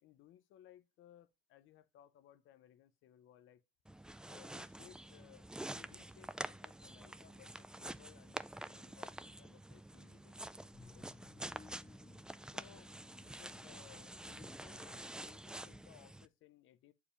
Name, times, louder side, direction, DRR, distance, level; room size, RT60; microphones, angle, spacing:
voice 1, 0.0-3.6 4.3-11.1 12.4-12.9 13.4-16.9, left 11 dB, 85° left, 0.7 m, -63 dB
sound 1, 3.9-16.3, right 1 dB, 5° right, 0.3 m, -48 dB
sound 2, 10.7-16.1, left 4 dB, 25° left, 0.8 m, -61 dB
6.9 x 4.8 x 3.2 m
cardioid pair, 90°, 20 cm